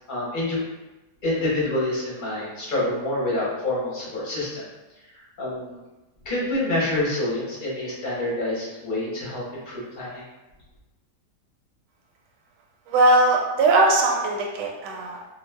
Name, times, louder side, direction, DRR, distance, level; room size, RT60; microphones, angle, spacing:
voice 1, 0.1-0.6 1.2-4.6 5.4-5.8 6.2-10.2, left 1 dB, 40° left, -6 dB, 0.8 m, -27 dB
voice 2, 12.9-15.2, right 2 dB, 85° right, 0 dB, 1.2 m, -20 dB
2.6 x 2.3 x 3.3 m, 1.1 s
omnidirectional pair, 1.8 m